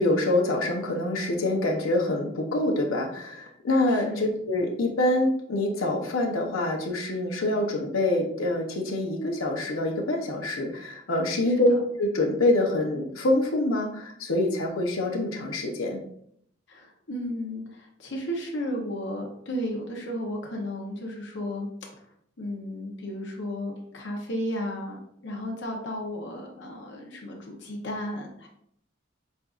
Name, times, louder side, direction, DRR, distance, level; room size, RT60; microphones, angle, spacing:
voice 1, 0.0-16.0, left 1 dB, 90° left, 2 dB, 0.7 m, -25 dB
voice 2, 3.9-4.3 11.4-11.8 16.7-21.7 22.4-28.5, equal, 60° left, 0 dB, 0.9 m, -34 dB
7.5 x 2.6 x 2.4 m, 0.68 s
head